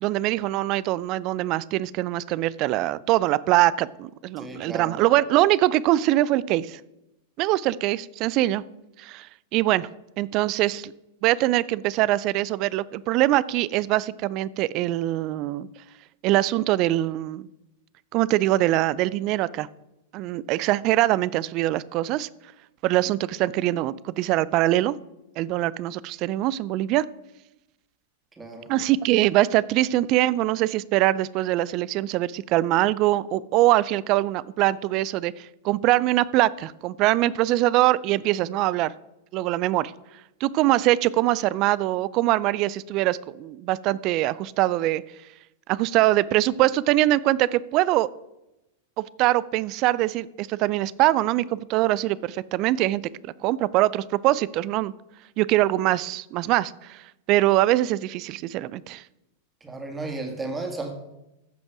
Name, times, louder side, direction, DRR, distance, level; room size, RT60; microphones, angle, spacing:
voice 1, 0.0-6.8 7.4-8.6 9.0-9.3 9.5-9.9 10.2-10.9 11.2-15.7 16.2-17.5 18.1-19.7 20.1-22.3 22.8-24.9 25.4-27.0 28.7-38.9 39.3-39.9 40.4-45.0 45.7-48.1 49.0-54.9 55.4-57.0 57.3-59.0, right 16 dB, 45° right, 20 dB, 0.4 m, -23 dB
voice 2, 4.4-4.9 28.4-28.7 59.6-60.9, right 3 dB, 15° right, 3 dB, 2.3 m, -33 dB
14.5 x 5.3 x 4.8 m, 0.92 s
hypercardioid pair, 100°, 0 cm